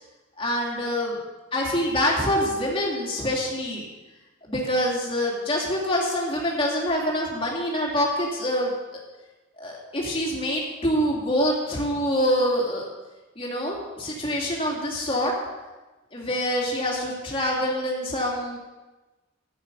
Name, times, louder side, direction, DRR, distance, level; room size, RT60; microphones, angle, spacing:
voice 1, 0.4-1.1 1.5-3.9 4.4-9.0 9.6-12.9 13.4-15.3 16.1-18.6, equal, 25° left, -3 dB, 2.7 m, -25 dB
11.5 x 9.0 x 5.5 m, 1.2 s
head